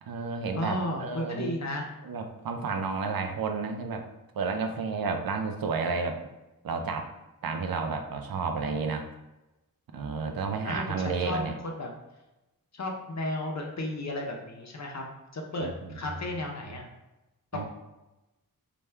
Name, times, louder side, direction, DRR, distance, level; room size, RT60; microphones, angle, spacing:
voice 1, 0.0-1.6 2.0-4.1 4.3-6.2 6.6-7.1 7.4-9.1 9.9-11.5 15.6-16.2 17.5-17.7, right 4 dB, 75° right, 5 dB, 0.5 m, -31 dB
voice 2, 0.5-1.9 10.6-11.9 12.7-15.0 15.3-16.9 17.5-17.7, left 1 dB, 50° left, 1 dB, 0.6 m, -34 dB
3.4 x 2.3 x 4.3 m, 1.0 s
wide cardioid pair, 75°, 35 cm